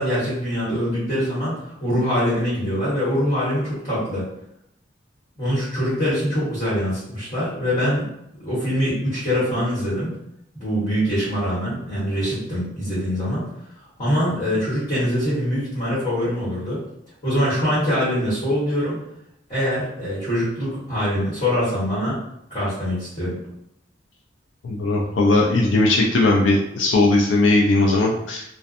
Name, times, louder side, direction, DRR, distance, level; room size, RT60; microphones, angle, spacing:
voice 1, 0.0-4.2 5.4-8.0 8.4-10.2 10.5-13.5 14.0-16.8 17.2-19.0 19.5-22.2 22.5-23.4, equal, 35° left, -11 dB, 1.2 m, -23 dB
voice 2, 24.6-28.4, left 2 dB, 75° left, -2 dB, 0.4 m, -18 dB
2.5 x 2.2 x 2.4 m, 0.79 s
head